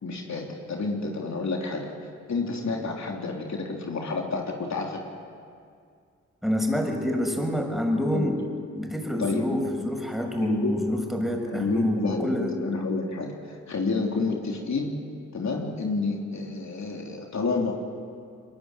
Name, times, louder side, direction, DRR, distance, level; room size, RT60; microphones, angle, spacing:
voice 1, 0.0-1.9 2.3-5.0 8.1-8.3 9.2-9.6 10.4-10.8 11.5-15.0 15.3-17.7, left 3 dB, 65° left, 0 dB, 3.4 m, -29 dB
voice 2, 6.4-8.4 8.7-12.5, equal, ahead, 2 dB, 6.5 m, -27 dB
22.5 x 20.5 x 9.3 m, 2.3 s
supercardioid pair, 40°, 31 cm